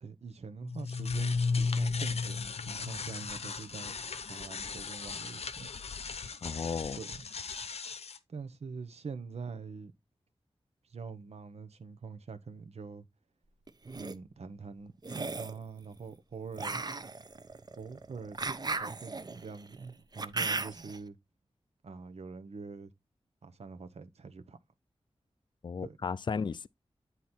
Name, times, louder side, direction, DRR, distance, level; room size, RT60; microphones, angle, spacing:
voice 1, 0.0-3.9 4.3-5.7 6.9-7.2 8.3-9.9 10.9-13.0 14.0-16.8 17.8-21.2 21.8-22.9 23.4-24.6 25.8-26.1, right 5 dB, 90° right, 0.9 m, -44 dB
sound 1, 0.6-8.2, left 4 dB, 80° left, 0.8 m, -35 dB
voice 2, 6.4-7.0 25.6-26.7, left 5 dB, 45° left, 0.4 m, -34 dB
sound 2, 13.7-14.1 15.0-15.6 16.6-21.0, right 3 dB, 40° right, 0.7 m, -36 dB
9.3 x 4.1 x 4.3 m
wide cardioid pair, 100°, 11 cm